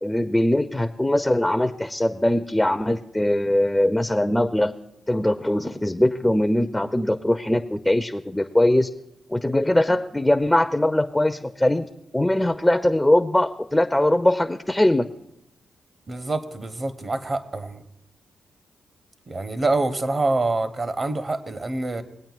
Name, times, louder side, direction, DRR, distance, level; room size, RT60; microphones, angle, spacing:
voice 1, 0.0-4.7 5.1-8.9 9.3-11.9 12.1-15.1, left 1 dB, 15° left, 9 dB, 0.5 m, -21 dB
voice 2, 16.1-17.8 19.3-22.0, right 2 dB, 45° right, 10 dB, 0.9 m, -26 dB
19.5 x 8.8 x 2.4 m, 0.80 s
hypercardioid pair, 40°, 0 cm